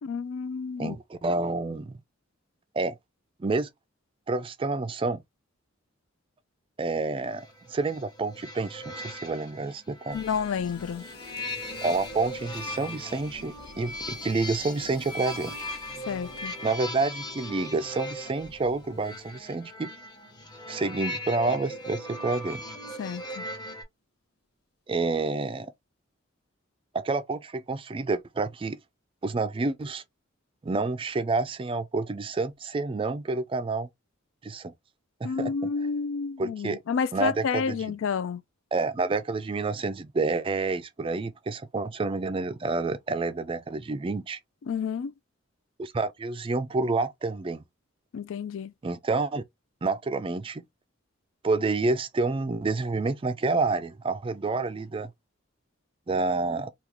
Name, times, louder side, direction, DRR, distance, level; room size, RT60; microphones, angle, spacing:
voice 1, 0.0-1.0 10.1-11.0 16.1-16.5 23.0-23.4 35.2-38.4 44.7-45.1 48.1-48.7, left 6 dB, 70° left, 0.4 m, -30 dB
voice 2, 0.8-2.0 2.7-3.0 3.4-3.7 4.3-5.2 6.8-10.2 11.8-15.6 16.6-19.9 20.7-22.6 24.9-25.7 26.9-28.8 29.2-30.0 30.6-33.9 34.4-34.7 35.2-35.5 36.4-36.8 37.1-37.9 38.7-44.4 45.8-47.6 48.8-49.4 49.8-50.6 51.4-55.1 56.1-56.7, right 3 dB, 25° right, 0.3 m, -29 dB
sound 1, 7.3-23.8, left 1 dB, 20° left, 0.9 m, -39 dB
sound 2, 10.1-21.2 21.5-21.8, left 3 dB, 50° left, 0.9 m, -51 dB
3.6 x 2.3 x 2.9 m
head